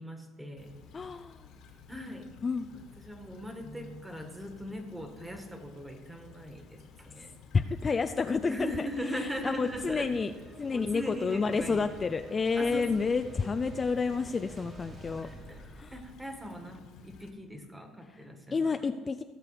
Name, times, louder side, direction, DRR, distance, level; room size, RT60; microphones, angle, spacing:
voice 1, 0.0-0.8 1.9-7.3 8.5-10.3 10.7-11.9 12.6-13.1 15.2-18.7, equal, 10° right, 4 dB, 1.8 m, -40 dB
Stream / Trickle dribble, 0.6-17.3, left 5 dB, 70° left, 1.8 m, -55 dB
voice 2, 0.9-1.5 2.4-2.7 7.1-7.2 7.5-10.3 10.6-15.9 18.1-18.2 18.5-19.2, left 4 dB, 25° left, 8 dB, 0.4 m, -30 dB
sound 1, 9.2-16.1, right 2 dB, 25° right, 1.5 m, -50 dB
16.5 x 6.8 x 5.0 m, 1.4 s
cardioid pair, 115°, 0 cm